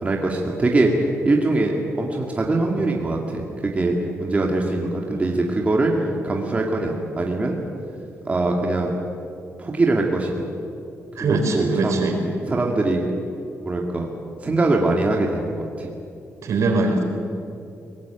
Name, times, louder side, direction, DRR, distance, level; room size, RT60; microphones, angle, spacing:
voice 1, 0.0-5.9 6.2-7.6 8.3-9.0 9.6-10.4 11.2-12.1 12.5-13.0 13.6-14.1 14.4-15.9, right 2 dB, 25° right, 0 dB, 2.2 m, -22 dB
voice 2, 11.2-12.2 16.4-17.0, right 3 dB, 70° right, 4 dB, 4.3 m, -21 dB
22.5 x 19.5 x 9.1 m, 2.6 s
wide cardioid pair, 140°, 5 cm